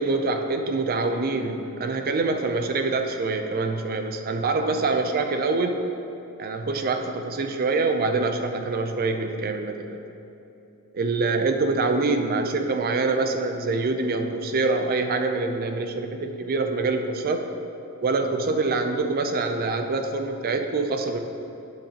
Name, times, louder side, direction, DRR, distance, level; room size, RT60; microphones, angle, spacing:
voice 1, 0.0-5.9 6.4-10.0 10.9-17.5 18.0-21.2, right 3 dB, 40° right, 6 dB, 0.5 m, -25 dB
9.2 x 7.3 x 2.9 m, 2.9 s
head